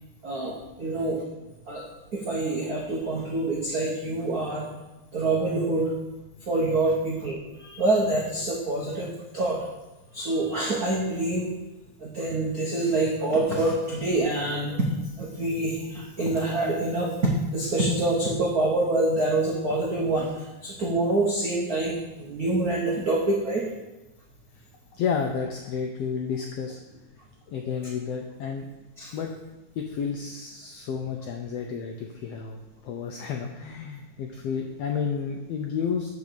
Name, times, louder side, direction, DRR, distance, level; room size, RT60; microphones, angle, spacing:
voice 1, 0.2-1.2 1.6-1.8 2.1-4.7 5.1-5.9 6.4-9.6 10.1-11.5 12.0-23.6 29.0-29.1, right 2 dB, 75° right, -3 dB, 0.8 m, -26 dB
voice 2, 25.0-26.8 27.5-28.7 29.1-29.3 29.7-36.1, left 6 dB, 80° left, 3 dB, 1.4 m, -31 dB
8.3 x 5.1 x 6.8 m, 1.0 s
omnidirectional pair, 3.7 m